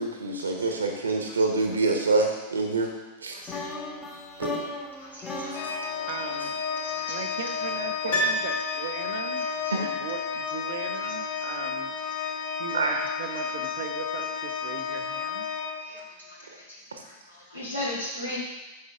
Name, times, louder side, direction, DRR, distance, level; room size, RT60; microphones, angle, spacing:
voice 1, 0.0-2.9 3.2-3.4 4.4-4.7 5.2-5.6 8.0-8.2 9.7-9.8 12.7-13.0 16.9-17.0, right 3 dB, 75° right, 3 dB, 1.3 m, -26 dB
sound 1, 3.5-7.4, left 3 dB, 20° left, 1.4 m, -37 dB
voice 2, 5.0-6.1 6.8-7.2 9.4-9.5 11.0-11.1 16.2-18.4, left 1 dB, 85° left, -6 dB, 3.1 m, -38 dB
Organ, 5.5-16.4, left 6 dB, 45° left, 0.7 m, -32 dB
voice 3, 6.1-6.5 7.1-9.5 9.7-11.9 12.6-15.4, right 8 dB, 55° right, 8 dB, 0.7 m, -38 dB
Piano, 8.1-9.4 9.6-9.7, right 1 dB, 60° left, 2.3 m, -29 dB
8.6 x 7.2 x 3.7 m, 1.1 s
figure-of-eight pair, 90°, 0 cm